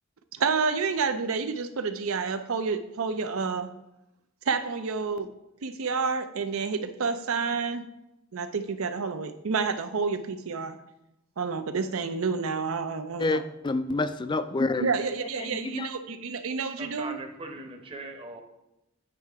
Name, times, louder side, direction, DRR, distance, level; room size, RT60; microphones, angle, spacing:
voice 1, 0.4-3.7 4.5-5.3 5.6-7.8 8.3-10.8 11.4-13.4 14.8-17.2, right 5 dB, 75° right, 9 dB, 0.6 m, -29 dB
voice 2, 13.2-14.9 15.4-15.9, left 3 dB, 20° left, 12 dB, 0.3 m, -28 dB
voice 3, 16.7-18.4, right 2 dB, 25° right, 4 dB, 0.8 m, -40 dB
9.1 x 5.5 x 3.5 m, 0.88 s
head